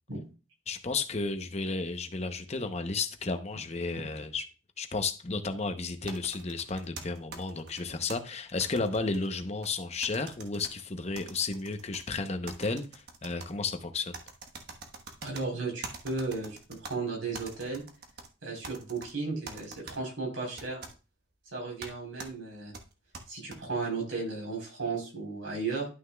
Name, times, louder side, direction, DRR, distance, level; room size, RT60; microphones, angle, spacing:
voice 1, 0.7-4.5 4.8-14.2, left 3 dB, 35° left, 0.8 m, -33 dB
sound 1, 6.1-8.2 8.6-9.7 10.0-10.7 11.2-12.0 12.5-13.5 14.1-15.4 15.8-16.9 17.3-18.3 18.6-19.1 19.5-20.0 20.6-20.9 21.8-21.9 22.2-22.3 22.7-23.6, right 4 dB, 55° right, 1.2 m, -44 dB
voice 2, 15.2-17.8 18.4-20.9 21.5-22.7 23.3-25.9, right 3 dB, 85° right, 4.1 m, -35 dB
11.5 x 6.3 x 2.3 m
head